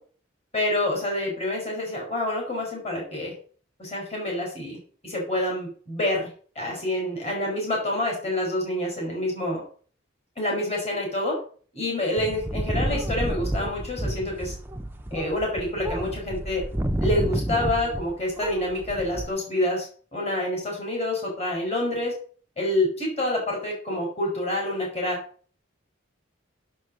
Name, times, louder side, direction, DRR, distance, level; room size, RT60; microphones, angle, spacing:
voice 1, 0.5-3.3 3.8-4.8 5.0-6.3 6.5-9.6 10.4-11.4 11.7-14.5 15.1-16.6 17.0-22.1 22.6-25.2, left 1 dB, 30° left, -1 dB, 4.7 m, -27 dB
sound 1, 12.2-18.1 18.4-19.3, right 1 dB, 10° right, 0.8 m, -30 dB
8.2 x 7.5 x 7.5 m, 0.44 s
head